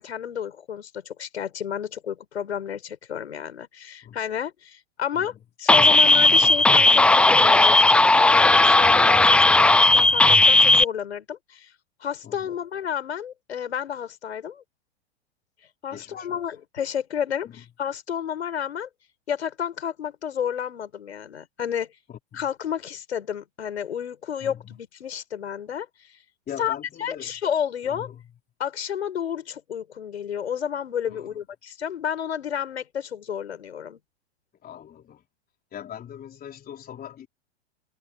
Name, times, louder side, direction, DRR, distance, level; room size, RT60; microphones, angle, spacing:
voice 1, 0.0-5.3 5.6-11.7 12.0-14.6 15.8-18.9 19.3-21.9 22.3-25.9 26.6-28.1 28.6-34.0, left 8 dB, 80° left, 6.6 m, -31 dB
sound 1, 5.7-10.8, left 2 dB, 5° left, 0.4 m, -16 dB
voice 2, 12.2-12.5 15.9-16.4 17.4-17.6 22.1-22.4 24.4-24.8 26.5-27.3 27.8-28.3 31.1-31.4 34.6-35.2 35.7-37.3, left 10 dB, 25° left, 4.2 m, -41 dB
hypercardioid pair, 100°, 33 cm